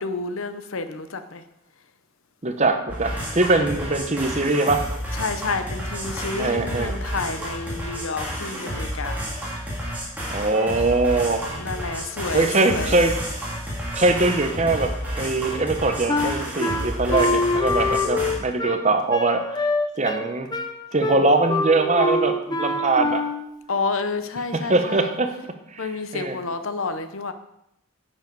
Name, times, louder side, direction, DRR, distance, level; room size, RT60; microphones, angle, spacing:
voice 1, 0.0-1.4 3.6-3.9 5.1-9.3 11.6-13.0 23.7-25.1 25.8-27.3, left 4 dB, 65° left, 10 dB, 0.7 m, -30 dB
voice 2, 2.4-4.9 6.4-7.0 10.3-11.5 12.3-13.2 13.9-19.6 20.0-20.5 20.9-23.3 24.5-25.3 25.7-25.9 26.1-26.4, right 2 dB, 30° right, 7 dB, 0.8 m, -22 dB
sound 1, 2.9-18.3, equal, 5° right, 2.4 m, -31 dB
Wind instrument woodwind instrument, 16.1-23.5, left 2 dB, 20° left, 0.6 m, -25 dB
10.0 x 7.3 x 4.7 m, 0.82 s
head